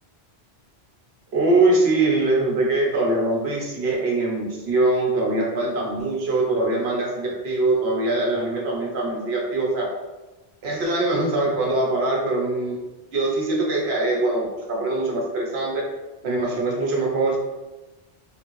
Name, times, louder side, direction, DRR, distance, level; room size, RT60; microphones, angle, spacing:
voice 1, 1.3-9.9 10.6-12.7 13.1-15.8 16.2-17.4, right 2 dB, 80° right, -2 dB, 1.1 m, -22 dB
3.4 x 2.6 x 3.0 m, 1.1 s
omnidirectional pair, 1.1 m